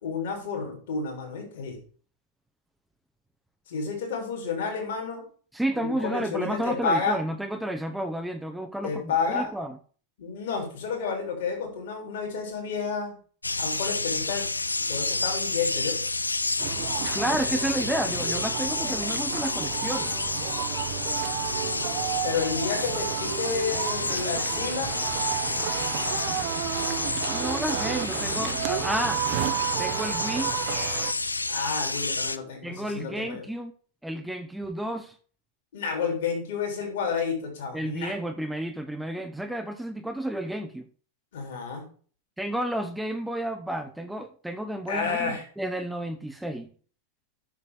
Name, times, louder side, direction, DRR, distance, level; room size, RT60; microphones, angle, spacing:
voice 1, 0.0-1.8 3.7-5.2 5.7-7.2 8.8-9.5 10.2-13.2 13.6-14.5 14.8-16.0 22.2-24.9 31.5-33.4 35.7-38.1 41.3-41.9 44.9-45.4, left 5 dB, 55° left, 3.5 m, -30 dB
voice 2, 5.5-9.8 17.1-20.1 27.1-29.3 29.8-30.5 32.6-33.7 34.0-35.2 37.7-40.9 42.4-46.7, right 1 dB, 5° right, 0.7 m, -31 dB
sound 1, 13.4-32.4, left 3 dB, 80° left, 0.5 m, -30 dB
sound 2, 16.6-31.1, right 12 dB, 45° right, 0.8 m, -32 dB
7.3 x 6.7 x 6.6 m
figure-of-eight pair, 90°, 0 cm